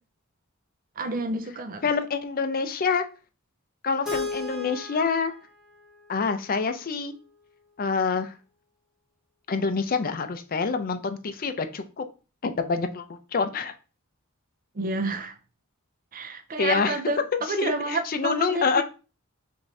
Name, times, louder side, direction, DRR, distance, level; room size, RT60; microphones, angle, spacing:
voice 1, 1.0-1.9 14.8-15.4 16.1-18.8, right 2 dB, 40° right, 0.5 m, -30 dB
voice 2, 1.8-3.1 3.8-5.3 6.1-7.1 7.8-8.3 9.5-12.0 12.4-13.0 13.3-13.7 16.6-17.0 17.6-18.8, left 5 dB, 40° left, 0.5 m, -26 dB
Keyboard (musical), 4.0-7.0, left 3 dB, ahead, 1.6 m, -36 dB
5.9 x 2.7 x 3.2 m
head